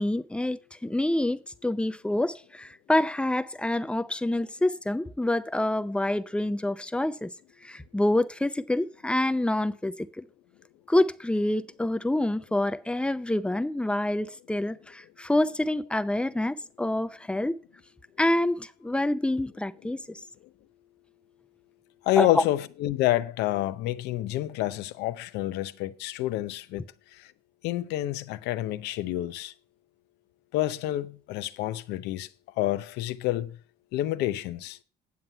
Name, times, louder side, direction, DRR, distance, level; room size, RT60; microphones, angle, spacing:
voice 1, 0.0-7.3 7.6-10.2 10.9-17.6 18.2-20.2 22.2-22.4, left 1 dB, 5° left, 0.5 m, -27 dB
voice 2, 22.0-26.8 27.1-27.3 27.6-29.5 30.5-32.3 32.6-33.6 33.9-34.8, left 15 dB, 90° left, 0.7 m, -28 dB
9.6 x 7.6 x 5.6 m
cardioid pair, 110°, 17 cm